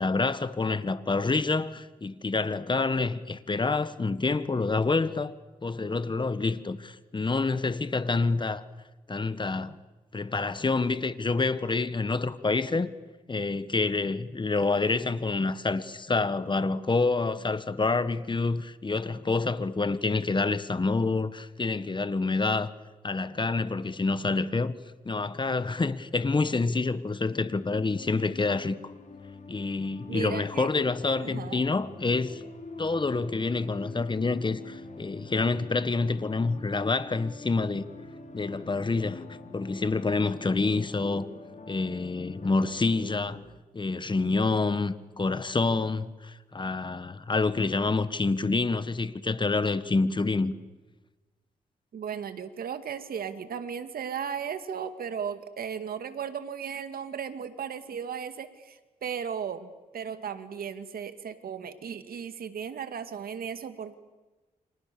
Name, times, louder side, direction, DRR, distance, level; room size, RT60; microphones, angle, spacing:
voice 1, 0.0-5.3 5.6-8.6 9.1-9.8 10.1-12.9 13.3-22.7 23.0-24.7 25.0-28.7 29.5-32.4 32.8-37.8 38.3-39.2 39.5-41.3 41.7-43.4 43.7-50.5, left 3 dB, 30° left, 1.6 m, -27 dB
sound 1, 27.1-43.4, left 2 dB, 50° left, 4.0 m, -45 dB
voice 2, 30.1-30.7 31.2-31.6 51.9-63.9, right 7 dB, 75° right, 2.1 m, -36 dB
30.0 x 26.0 x 7.0 m
cardioid pair, 70°, 15 cm